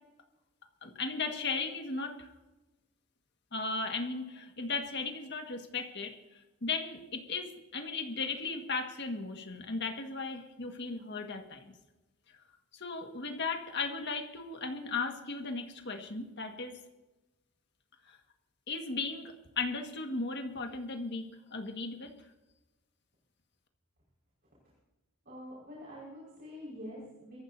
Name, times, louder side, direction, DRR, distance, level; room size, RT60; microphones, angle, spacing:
voice 1, 0.8-2.3 3.5-11.7 12.7-16.8 18.0-18.2 18.7-22.1, left 4 dB, 55° left, 4 dB, 1.7 m, -36 dB
voice 2, 25.2-27.4, equal, 50° right, -6 dB, 5.1 m, -46 dB
23.5 x 14.5 x 2.7 m, 1.1 s
head